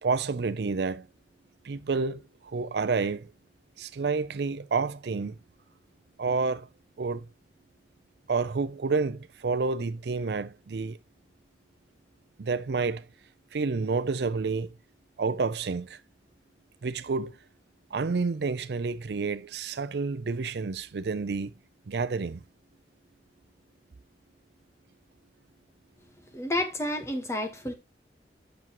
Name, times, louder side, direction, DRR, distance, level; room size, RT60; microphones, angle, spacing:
voice 1, 0.0-1.1 1.6-3.3 3.8-5.4 6.2-6.7 7.0-7.3 8.3-11.0 12.4-13.0 13.5-14.7 15.2-16.0 16.8-17.4 17.9-21.5 21.9-22.4, right 4 dB, 70° right, 0.5 m, -29 dB
voice 2, 26.3-27.7, left 1 dB, 15° left, 1.2 m, -30 dB
7.9 x 6.1 x 3.0 m
head